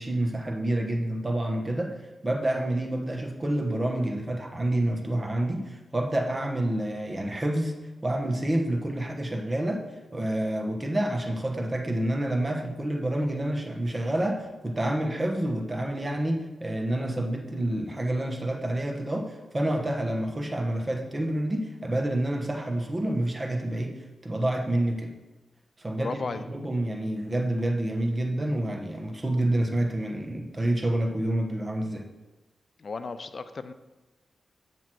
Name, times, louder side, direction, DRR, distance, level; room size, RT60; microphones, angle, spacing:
voice 1, 0.0-1.9 2.2-7.7 8.0-9.8 10.1-25.1 25.8-32.0, right 1 dB, 30° right, 2 dB, 1.1 m, -28 dB
voice 2, 25.9-26.4 32.8-33.7, left 4 dB, 55° left, 11 dB, 0.4 m, -34 dB
7.4 x 3.0 x 6.0 m, 1.1 s
cardioid pair, 50°, 0 cm